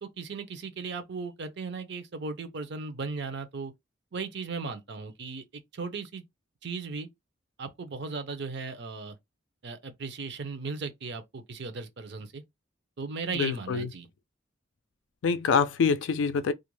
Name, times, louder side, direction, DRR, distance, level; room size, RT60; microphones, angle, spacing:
voice 1, 0.0-3.7 4.1-6.2 6.6-7.1 7.6-9.2 9.6-12.4 13.0-14.1, right 4 dB, 60° right, 0.6 m, -36 dB
voice 2, 13.3-13.9 15.2-16.5, left 5 dB, 80° left, 0.4 m, -25 dB
2.4 x 2.1 x 3.0 m
head